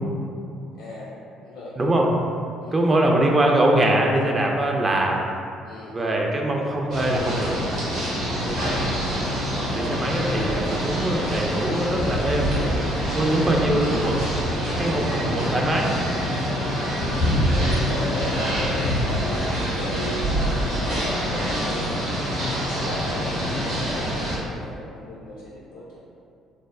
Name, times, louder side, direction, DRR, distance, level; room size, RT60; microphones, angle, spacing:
voice 1, 0.7-1.1 1.4-1.8 2.6-3.1 5.6-6.1 7.8-8.8 12.3-12.8 13.2-14.1 16.5-17.0 17.5-21.9 22.4-26.0, left 2 dB, 70° left, -6 dB, 0.3 m, -37 dB
voice 2, 1.8-2.1 2.7-5.2 5.9-7.6 9.5-12.6 13.2-14.2 14.5-15.9, right 1 dB, 30° right, 0 dB, 0.4 m, -22 dB
sound 1, 6.9-24.4, equal, 65° right, 1.0 m, -25 dB
3.1 x 2.1 x 2.3 m, 2.5 s
figure-of-eight pair, 50°, 0 cm